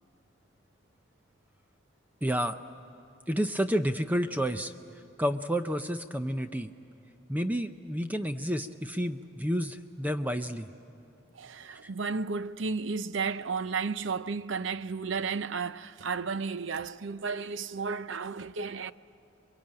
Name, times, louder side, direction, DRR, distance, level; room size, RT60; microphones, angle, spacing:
voice 1, 2.2-2.6 3.3-4.7 5.2-6.7 7.3-10.7 11.8-11.9, equal, 10° right, 0.5 m, -30 dB
voice 2, 11.3-18.9, right 5 dB, 60° right, 0.6 m, -33 dB
28.0 x 23.0 x 9.0 m
head